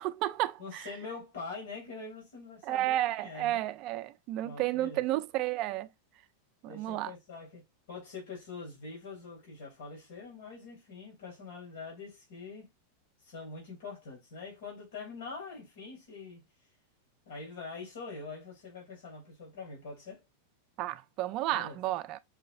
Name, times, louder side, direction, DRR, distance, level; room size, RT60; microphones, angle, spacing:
voice 1, 0.0-0.9 2.6-5.9 6.6-7.1 20.8-22.2, right 15 dB, 30° right, 0.4 m, -32 dB
voice 2, 0.6-3.6 4.4-5.0 6.7-12.7 13.2-16.4 17.3-20.2 21.5-21.8, left 4 dB, 70° left, 2.7 m, -44 dB
5.6 x 3.0 x 2.5 m
supercardioid pair, 180°, 0 cm